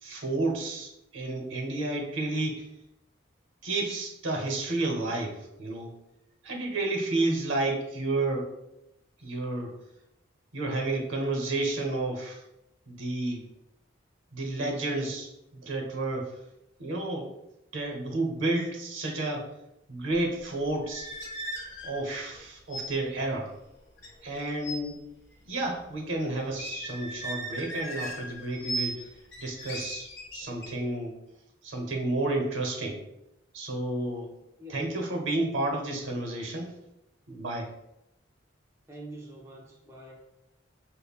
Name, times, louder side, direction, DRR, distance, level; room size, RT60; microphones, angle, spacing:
voice 1, 0.0-2.7 3.6-5.9 6.4-8.5 9.2-9.7 10.5-12.4 12.9-13.4 14.3-16.4 16.8-17.3 17.7-19.5 19.9-21.1 21.8-23.5 24.2-24.9 25.5-29.1 29.4-31.1 31.6-33.0 33.5-34.3 34.7-36.7 37.3-37.7, right 2 dB, 80° right, 2 dB, 0.8 m, -31 dB
sound 1, 20.7-22.4 22.7-22.9 23.2-23.4 24.0-24.8 26.5-29.0 29.3-30.7, right 1 dB, 70° left, 0.9 m, -37 dB
voice 2, 34.6-34.9 38.9-40.1, right 1 dB, 15° right, -3 dB, 0.5 m, -45 dB
5.3 x 2.1 x 2.3 m, 0.86 s
head